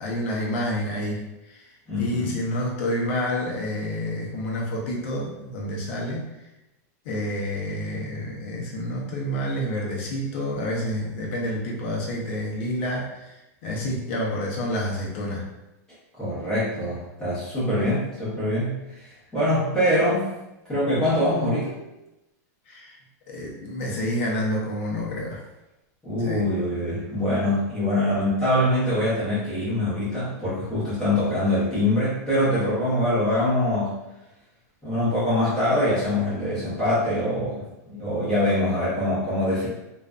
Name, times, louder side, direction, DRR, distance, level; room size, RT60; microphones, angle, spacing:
voice 1, 0.0-6.3 7.0-15.5 22.7-23.0 23.3-25.4 26.2-26.4 39.6-39.7, left 1 dB, 45° left, -2 dB, 0.6 m, -29 dB
voice 2, 1.9-2.3 16.2-20.2 20.7-21.8 26.0-33.9 34.8-39.7, left 1 dB, 5° left, -12 dB, 0.8 m, -24 dB
2.5 x 2.2 x 2.3 m, 0.96 s
supercardioid pair, 180°, 9 cm